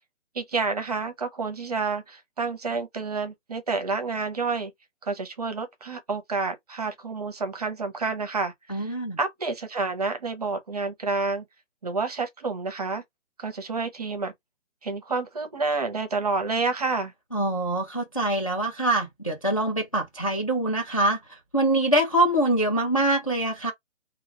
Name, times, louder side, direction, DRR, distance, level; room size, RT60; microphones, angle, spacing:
voice 1, 0.3-4.7 5.0-11.4 11.8-13.0 13.4-14.3 14.8-17.1, right 4 dB, 30° right, 0.6 m, -29 dB
voice 2, 8.7-9.2 17.3-21.2 21.5-23.7, right 1 dB, 30° left, 0.4 m, -24 dB
2.3 x 2.2 x 2.8 m
hypercardioid pair, 160°, 37 cm